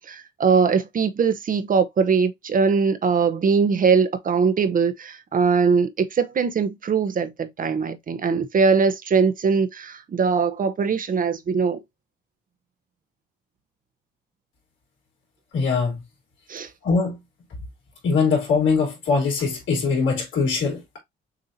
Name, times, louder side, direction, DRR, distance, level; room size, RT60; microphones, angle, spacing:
voice 1, 0.0-11.8 16.5-16.7, right 5 dB, 45° right, 0.8 m, -21 dB
voice 2, 15.5-16.0 16.8-17.2 18.0-21.0, left 4 dB, 75° left, 3.2 m, -22 dB
6.6 x 2.8 x 2.7 m
cardioid pair, 90°, 20 cm